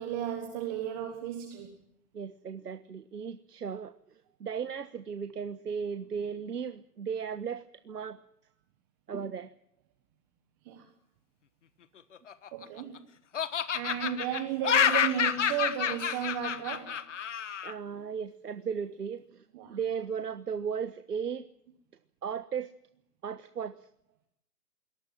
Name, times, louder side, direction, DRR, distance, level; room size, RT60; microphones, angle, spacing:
voice 1, 0.0-1.7 10.6-10.9 12.5-13.0 13.7-17.0 19.5-19.8, right 10 dB, 15° right, 5 dB, 1.3 m, -34 dB
voice 2, 2.1-3.9 4.4-8.2 9.1-9.5 17.6-19.4 19.7-21.5 22.2-22.7 23.2-23.7, right 7 dB, 80° right, 11 dB, 1.3 m, -36 dB
Laughter, 12.1-13.0 13.3-17.7, left 8 dB, 50° left, 1.4 m, -29 dB
23.5 x 19.0 x 7.5 m, 0.71 s
hypercardioid pair, 160°, 47 cm